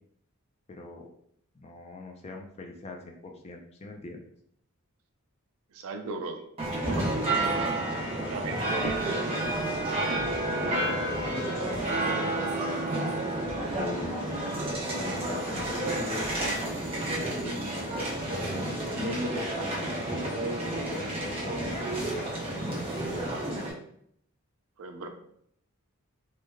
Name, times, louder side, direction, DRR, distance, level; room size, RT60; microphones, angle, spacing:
voice 1, 0.7-1.1 1.5-4.2 10.4-12.9 13.7-14.5 14.9-16.5 17.2-17.7 18.4-20.4 20.6-21.9 22.5-23.4, left 2 dB, 30° left, 2 dB, 0.4 m, -40 dB
voice 2, 5.7-6.4 6.8-7.5 8.3-9.1 24.8-25.1, right 3 dB, 65° right, 5 dB, 0.4 m, -37 dB
sound 1, 6.6-23.7, right 1 dB, 25° right, 0.7 m, -30 dB
3.1 x 2.1 x 3.5 m, 0.68 s
head